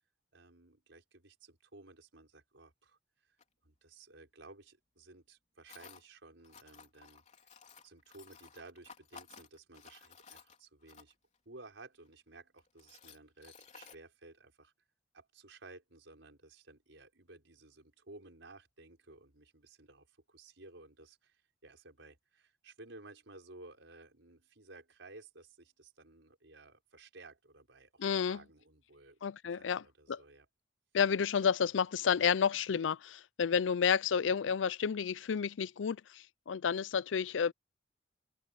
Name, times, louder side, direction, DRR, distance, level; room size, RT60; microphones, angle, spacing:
voice 1, 0.3-3.0 3.6-7.2 7.8-11.1 11.4-14.7 15.1-29.2 29.5-30.5, right 2 dB, 80° right, 5.0 m, -56 dB
Tools, 3.4-3.5 5.7-6.0 6.4-11.4 12.1-12.2 12.6-14.0, left 6 dB, 40° left, 3.6 m, -56 dB
voice 2, 28.0-28.4 29.2-30.2 30.9-37.5, left 6 dB, 90° left, 0.5 m, -31 dB
open air
head